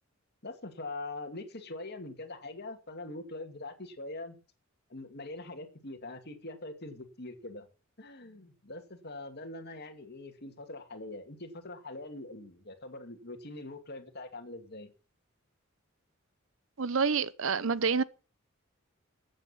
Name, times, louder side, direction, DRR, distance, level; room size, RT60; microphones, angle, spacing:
voice 1, 0.4-4.4 4.9-7.7 8.0-14.9, left 2 dB, 50° left, 2.5 m, -43 dB
voice 2, 16.8-18.0, right 5 dB, 65° right, 0.7 m, -28 dB
15.0 x 9.0 x 5.7 m
head